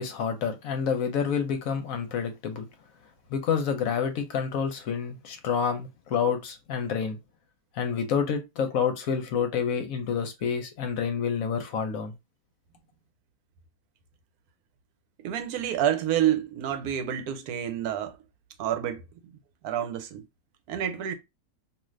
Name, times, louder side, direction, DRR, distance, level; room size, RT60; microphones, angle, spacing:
voice 1, 0.0-2.7 3.3-7.2 7.7-12.1, left 7 dB, 70° left, 1.0 m, -28 dB
voice 2, 15.2-18.2 18.6-19.0 19.6-20.2 20.7-21.1, right 10 dB, 80° right, 1.1 m, -28 dB
2.7 x 2.4 x 3.1 m
omnidirectional pair, 1.6 m